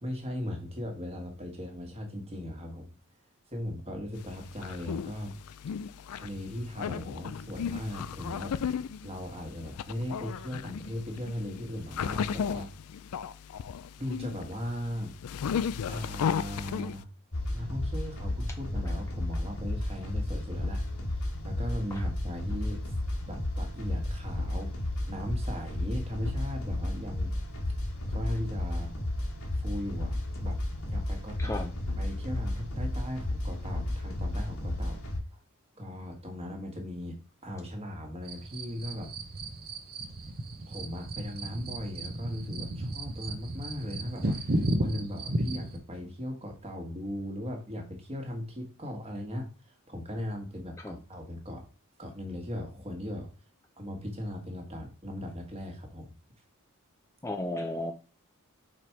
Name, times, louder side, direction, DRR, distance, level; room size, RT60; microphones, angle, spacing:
voice 1, 0.0-3.0 3.5-5.3 6.1-8.5 9.0-12.7 14.0-15.1 15.9-17.1 17.5-20.8 21.4-22.9 23.3-27.4 28.1-28.9 29.5-30.1 30.4-30.6 30.9-31.7 32.0-35.0 35.8-39.1 40.7-44.4 44.8-51.6 52.0-53.3 53.8-56.1, left 1 dB, 30° right, 1.6 m, -38 dB
sound 1, 4.2-17.0, left 7 dB, 85° left, 0.4 m, -35 dB
sound 2, 17.3-35.2, left 1 dB, 70° left, 1.5 m, -33 dB
voice 2, 31.4-31.7 50.8-50.9 57.2-57.9, left 1 dB, 15° left, 0.5 m, -33 dB
sound 3, 38.3-45.8, right 1 dB, 45° right, 0.8 m, -34 dB
5.0 x 4.3 x 4.6 m
head